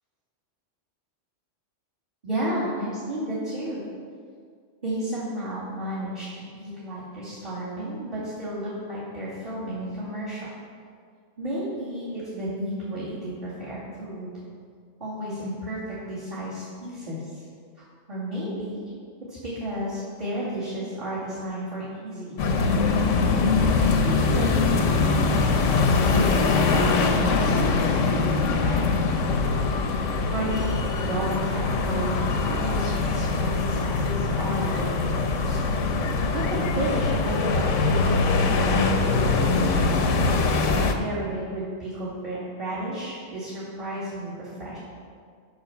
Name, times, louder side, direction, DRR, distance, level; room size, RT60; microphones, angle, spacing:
voice 1, 2.2-3.8 4.8-10.5 11.4-14.4 15.0-17.4 17.8-18.8 19.3-22.7 23.5-25.4 26.0-29.0 29.8-32.3 32.5-35.6 36.3-39.7 40.3-44.8, right 1 dB, 35° right, -11 dB, 2.6 m, -32 dB
sound 1, 22.4-40.9, left 4 dB, 85° left, 1.2 m, -23 dB
9.5 x 6.1 x 5.9 m, 2.1 s
omnidirectional pair, 1.3 m